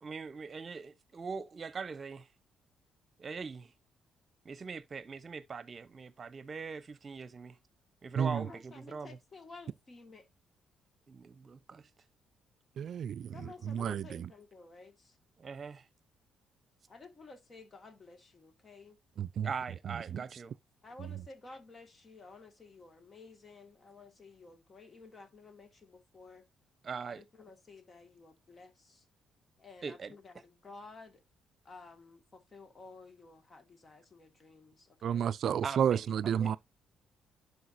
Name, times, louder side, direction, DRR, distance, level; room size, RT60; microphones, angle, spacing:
voice 1, 0.0-2.3 3.2-3.7 4.4-7.6 8.0-9.2 11.1-11.9 15.4-15.9 19.4-20.6 26.8-27.2 29.8-30.2 35.4-36.6, right 5 dB, 40° right, 0.9 m, -42 dB
voice 2, 8.3-10.3 13.3-15.2 16.9-19.0 20.8-26.4 27.0-29.0 29.6-31.2 31.6-35.3, left 3 dB, 35° left, 2.0 m, -53 dB
voice 3, 12.8-13.3 13.7-14.0 19.2-19.5 20.1-20.2 35.0-36.6, right 8 dB, 65° right, 0.3 m, -31 dB
11.0 x 4.7 x 2.7 m
cardioid pair, 90°, 0 cm